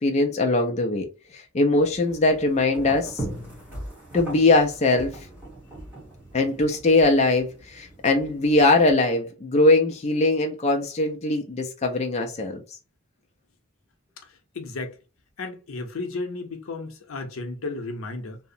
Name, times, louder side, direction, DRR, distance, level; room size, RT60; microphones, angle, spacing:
voice 1, 0.0-3.2 4.1-5.2 6.3-12.6, left 2 dB, 30° left, 0.4 m, -21 dB
sound 1, 1.7-8.9, right 1 dB, 10° right, 1.1 m, -39 dB
voice 2, 14.5-14.9 15.4-18.4, left 3 dB, 85° left, 0.6 m, -33 dB
2.8 x 2.0 x 2.5 m
head